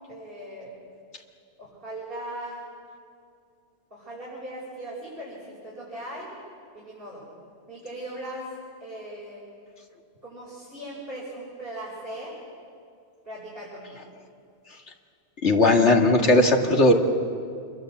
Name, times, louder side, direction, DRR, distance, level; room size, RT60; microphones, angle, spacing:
voice 1, 0.1-0.7 1.6-2.6 3.9-6.4 6.7-7.2 7.7-8.5 8.8-9.4 10.2-12.4 13.2-14.0, right 1 dB, 50° right, -6 dB, 6.2 m, -38 dB
voice 2, 15.4-16.9, left 2 dB, 75° left, 2 dB, 2.4 m, -18 dB
27.0 x 23.0 x 7.9 m, 2.4 s
omnidirectional pair, 1.2 m